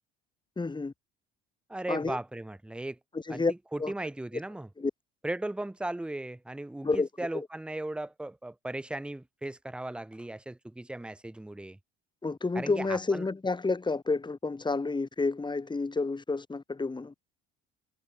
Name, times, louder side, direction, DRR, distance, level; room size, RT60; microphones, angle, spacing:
voice 1, 0.6-0.9 1.9-2.2 3.1-3.5 3.8-3.9 4.8-4.9 6.8-7.1 7.3-7.5 12.2-17.1, left 3 dB, 15° left, 1.7 m, -30 dB
voice 2, 1.7-3.0 3.3-3.4 3.7-4.7 5.2-11.8 12.5-13.3, right 1 dB, 5° right, 0.6 m, -37 dB
figure-of-eight pair, 55°, 32 cm